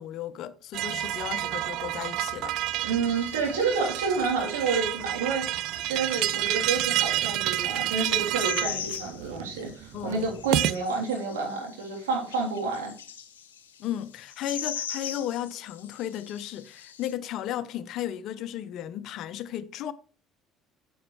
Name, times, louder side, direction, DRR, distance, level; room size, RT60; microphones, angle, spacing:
voice 1, 0.0-2.6 8.6-8.9 9.9-10.3 13.8-19.9, left 11 dB, 60° left, 0.7 m, -35 dB
sound 1, 0.7-10.8, right 14 dB, 65° right, 0.4 m, -29 dB
voice 2, 2.8-12.9, right 4 dB, 80° right, 3.1 m, -29 dB
sound 2, 2.9-17.1, left 8 dB, 85° left, 0.9 m, -42 dB
9.8 x 7.2 x 3.1 m
hypercardioid pair, 60°, 0 cm